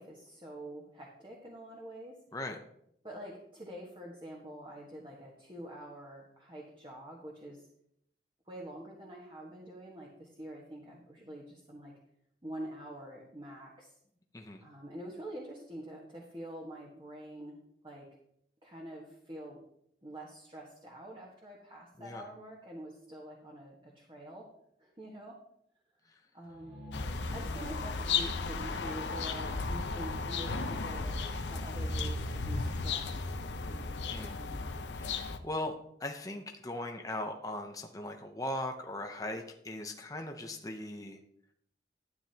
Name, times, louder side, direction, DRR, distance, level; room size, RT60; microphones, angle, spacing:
voice 1, 0.0-2.2 3.0-7.6 8.5-11.9 12.4-13.9 14.6-17.6 17.8-18.1 18.6-19.6 20.0-24.5 24.8-25.4 26.3-26.8 27.3-33.4 33.7-34.9, right 1 dB, 25° right, -3 dB, 1.5 m, -46 dB
sound 1, 26.4-30.2, left 1 dB, 70° right, 2.1 m, -53 dB
sound 2, 26.9-35.4, left 4 dB, 80° left, 0.8 m, -35 dB
voice 2, 35.4-35.7 36.0-41.2, left 1 dB, 20° left, 3 dB, 0.7 m, -39 dB
12.0 x 9.6 x 2.9 m, 0.72 s
head